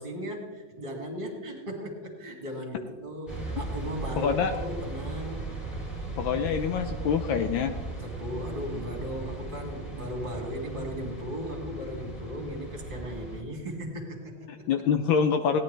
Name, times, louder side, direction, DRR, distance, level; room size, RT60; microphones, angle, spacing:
voice 1, 0.0-5.6 8.0-14.5, equal, 25° right, 1 dB, 2.4 m, -37 dB
sound 1, 3.3-13.4, right 2 dB, ahead, 2.5 m, -37 dB
voice 2, 4.2-4.5 6.2-7.7 14.7-15.6, left 6 dB, 75° left, 7 dB, 1.4 m, -25 dB
17.5 x 10.5 x 3.3 m, 1.4 s
omnidirectional pair, 2.2 m